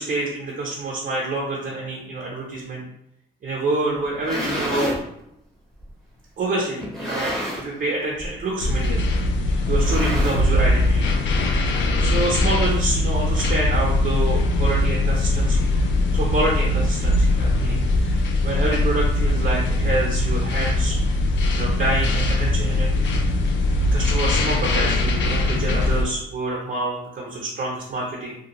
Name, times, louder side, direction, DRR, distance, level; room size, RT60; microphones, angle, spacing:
voice 1, 0.0-2.8 3.4-4.9 6.4-9.0 9.7-11.0 12.0-15.7 16.1-21.0 21.5-22.9 23.9-28.4, right 2 dB, 45° right, -3 dB, 0.6 m, -27 dB
sound 1, 4.0-5.0 5.8-5.9 6.8-7.8 8.1-8.4 8.7-8.8 9.7-10.7, equal, ahead, 0.8 m, -29 dB
sound 2, 8.6-26.1, left 2 dB, 70° left, 0.4 m, -21 dB
2.5 x 2.3 x 2.8 m, 0.78 s
cardioid pair, 90°, 20 cm